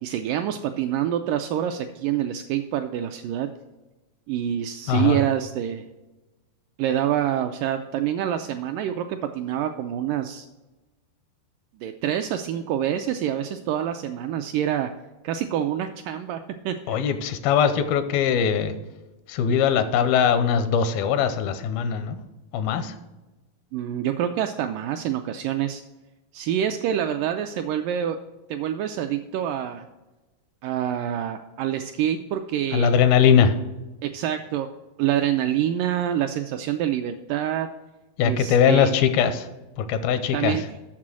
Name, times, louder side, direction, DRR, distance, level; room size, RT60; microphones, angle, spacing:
voice 1, 0.0-3.5 4.3-5.9 6.8-10.5 11.8-14.9 15.2-17.0 23.7-25.8 26.3-28.2 28.5-29.9 30.6-33.0 34.0-34.7 35.0-37.7 38.2-39.0 40.3-40.6, right 10 dB, 85° right, 6 dB, 1.9 m, -26 dB
voice 2, 4.9-5.2 16.9-18.8 19.3-22.2 22.5-23.0 32.7-33.5 38.2-39.5 39.8-40.6, left 7 dB, 85° left, 10 dB, 2.6 m, -21 dB
7.4 x 6.6 x 6.1 m, 1.1 s
omnidirectional pair, 4.2 m